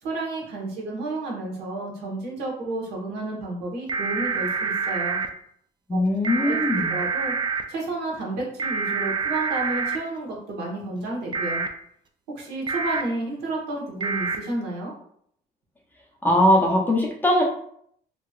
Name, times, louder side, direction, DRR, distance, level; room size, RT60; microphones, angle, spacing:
voice 1, 0.0-5.2 5.9-6.0 6.3-6.6 6.9-7.3 7.7-11.7 12.3-14.9, right 2 dB, 80° right, -3 dB, 1.2 m, -31 dB
sound 1, 3.9-5.3 6.2-7.6 8.6-10.0 11.3-11.7 12.7-13.0 14.0-14.4, right 5 dB, 30° right, 0.3 m, -26 dB
voice 2, 5.9-7.0 16.2-17.4, left 1 dB, 10° left, -2 dB, 0.6 m, -20 dB
2.9 x 2.9 x 2.4 m, 0.66 s
cardioid pair, 110°, 17 cm